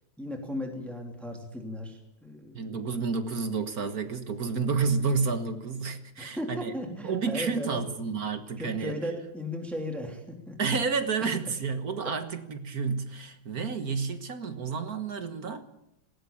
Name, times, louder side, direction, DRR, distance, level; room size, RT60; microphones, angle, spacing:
voice 1, 0.2-2.9 6.2-7.8 8.6-10.6 12.0-12.1, left 1 dB, ahead, 2.8 m, -36 dB
voice 2, 2.5-6.8 7.0-8.9 10.6-15.6, right 5 dB, 50° right, 1.7 m, -30 dB
19.0 x 18.0 x 8.7 m
omnidirectional pair, 2.2 m